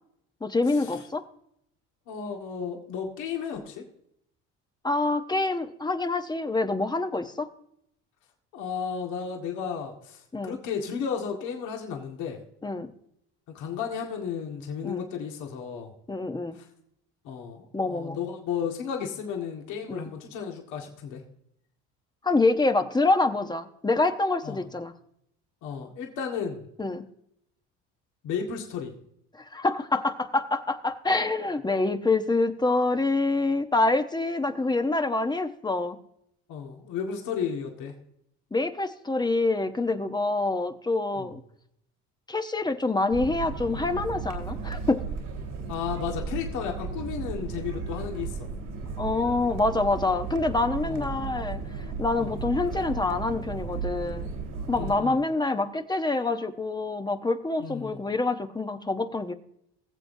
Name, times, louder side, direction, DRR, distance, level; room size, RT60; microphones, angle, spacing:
voice 1, 0.4-1.2 4.8-7.5 10.3-10.6 12.6-12.9 14.8-15.1 16.1-16.6 17.7-18.2 19.9-20.1 22.2-24.9 26.8-27.0 29.5-36.0 38.5-41.4 42.3-45.0 49.0-51.6 52.0-54.3 54.7-59.3, left 3 dB, 15° left, 8 dB, 0.9 m, -26 dB
voice 2, 2.1-3.8 8.5-12.4 13.5-15.9 16.5-16.6 17.2-21.2 24.4-24.7 25.6-26.7 28.2-28.9 36.5-38.0 41.2-41.3 45.7-48.5 50.8-51.2 52.1-52.4 54.8-55.2 57.6-58.0, left 7 dB, 70° left, 1 dB, 1.9 m, -33 dB
sound 1, 43.1-55.0, right 5 dB, 80° right, 3.1 m, -35 dB
20.5 x 7.6 x 2.7 m, 0.73 s
supercardioid pair, 95°, 31 cm